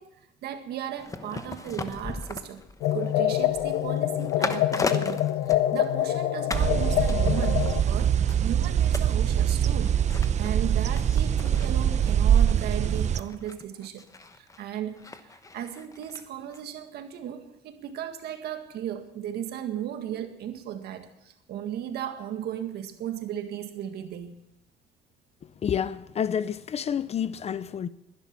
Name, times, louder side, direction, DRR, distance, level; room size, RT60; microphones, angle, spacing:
voice 1, 0.0-2.6 2.9-10.0 10.4-14.0 14.3-24.4, right 10 dB, 70° right, 1.8 m, -36 dB
sound 1, 1.0-6.2 6.5-6.8 7.1-16.2 16.5-16.6, left 3 dB, 20° left, 1.1 m, -38 dB
sound 2, 2.8-7.8, left 13 dB, 85° left, 0.8 m, -26 dB
sound 3, 6.5-13.2, right 9 dB, 45° right, 0.8 m, -23 dB
voice 2, 25.4-27.9, left 8 dB, 40° left, 0.7 m, -29 dB
20.0 x 11.5 x 6.0 m
cardioid pair, 110°, 17 cm